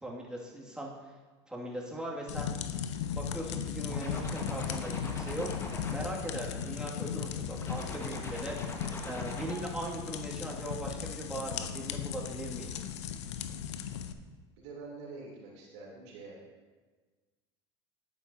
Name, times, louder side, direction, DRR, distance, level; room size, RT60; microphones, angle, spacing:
voice 1, 0.0-0.9 1.5-2.5 3.1-5.5 5.9-8.6 9.0-12.7, right 1 dB, 5° right, -4 dB, 2.2 m, -39 dB
sound 1, 2.3-14.1, left 8 dB, 85° left, 0.6 m, -37 dB
sound 2, 3.9-7.1 7.5-9.8, left 2 dB, 20° left, 1.5 m, -43 dB
voice 2, 14.6-16.4, right 3 dB, 75° right, -4 dB, 3.2 m, -46 dB
11.5 x 8.9 x 2.8 m, 1.4 s
hypercardioid pair, 90°, 14 cm